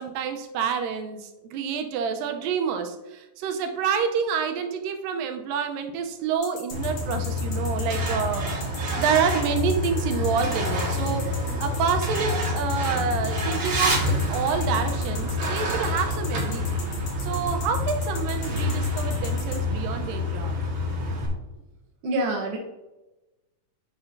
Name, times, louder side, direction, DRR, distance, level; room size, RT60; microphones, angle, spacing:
voice 1, 0.0-8.5 9.0-11.3 11.6-16.8 17.2-20.6, right 7 dB, 80° right, 6 dB, 2.4 m, -28 dB
sound 1, 6.4-19.6, left 5 dB, 55° left, 2.2 m, -40 dB
Truck, 6.7-21.3, left 2 dB, 45° right, 2.0 m, -27 dB
voice 2, 22.0-22.6, right 1 dB, 65° right, 0 dB, 1.6 m, -26 dB
10.0 x 6.8 x 2.7 m, 1.0 s
omnidirectional pair, 4.0 m